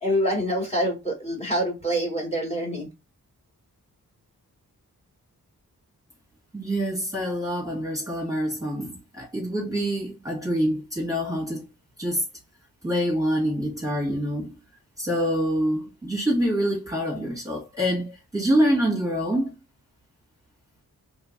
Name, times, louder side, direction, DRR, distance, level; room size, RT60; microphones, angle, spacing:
voice 1, 0.0-2.9, equal, 15° left, 2.1 m, -26 dB
voice 2, 6.5-11.7 12.0-12.2 12.8-14.6 15.0-19.6, equal, 10° right, 1.8 m, -26 dB
3.7 x 3.2 x 2.6 m
cardioid pair, 55°, 37 cm